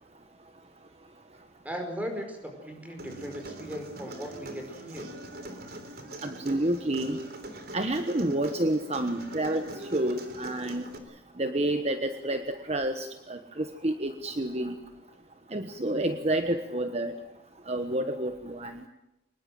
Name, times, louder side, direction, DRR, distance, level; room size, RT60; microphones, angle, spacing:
voice 1, 1.6-5.1, equal, 10° right, 4 dB, 5.0 m, -38 dB
Human voice, 3.0-11.0, right 1 dB, 55° right, 3.5 m, -42 dB
voice 2, 6.2-7.2 7.7-9.6 9.9-10.8 11.4-14.8 15.5-17.1 17.7-18.7, right 1 dB, 35° right, 8 dB, 1.2 m, -29 dB
24.5 x 20.5 x 7.7 m, 0.90 s
head